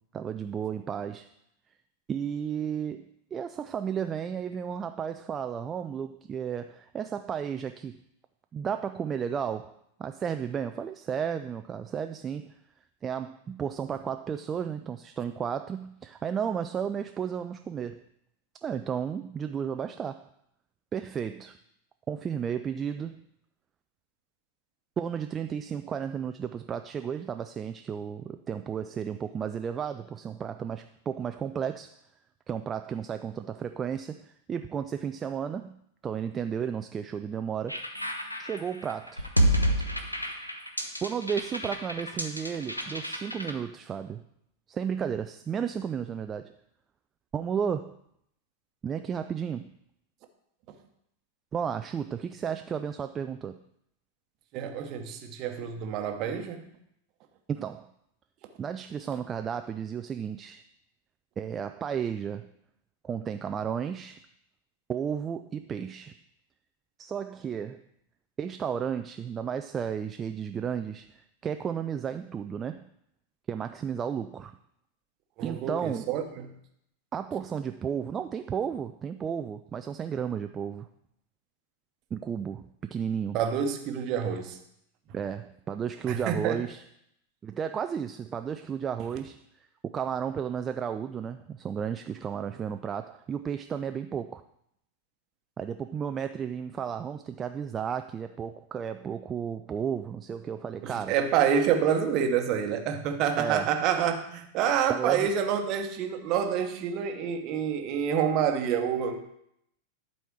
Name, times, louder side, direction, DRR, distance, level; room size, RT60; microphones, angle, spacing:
voice 1, 0.1-1.3 2.1-3.1 3.3-8.0 8.5-12.5 13.0-18.0 18.6-20.3 20.9-21.6 22.1-23.2 25.0-32.0 32.5-35.8 36.0-37.8 38.4-39.3 41.0-44.2 44.7-46.5 47.3-47.9 48.8-49.7 51.5-53.6 57.5-57.9 58.6-60.6 61.4-62.5 63.0-64.2 64.9-66.2 67.0-67.8 68.4-72.9 73.5-74.5 75.4-76.1 77.1-80.9 82.1-83.4 85.1-86.8 87.4-89.4 89.8-94.4 95.6-101.2 103.4-103.8 104.9-105.3, right 7 dB, 25° right, 8 dB, 0.3 m, -33 dB
sound 1, 37.7-43.5, equal, 85° left, 0.7 m, -29 dB
voice 2, 54.5-56.7 75.4-76.5 83.3-84.6 86.1-86.6 100.8-109.2, right 8 dB, 40° right, 6 dB, 1.0 m, -27 dB
11.5 x 4.2 x 4.7 m, 0.75 s
figure-of-eight pair, 90°, 0 cm